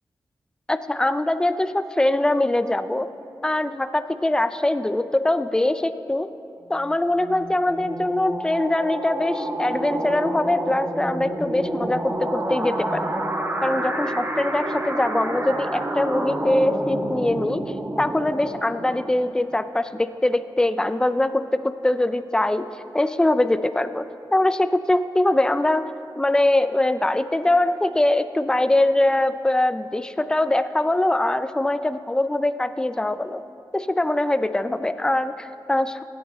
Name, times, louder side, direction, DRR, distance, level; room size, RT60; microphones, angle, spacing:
voice 1, 0.7-3.1 3.4-6.3 6.7-13.2 13.6-17.6 18.0-22.7 22.9-24.1 24.3-25.9 26.2-33.4 33.7-36.0, left 1 dB, 10° left, 12 dB, 0.3 m, -22 dB
sound 1, 6.8-19.4, right 1 dB, 25° right, 0.8 m, -29 dB
16.5 x 7.1 x 4.2 m, 2.7 s
wide cardioid pair, 100°, 8 cm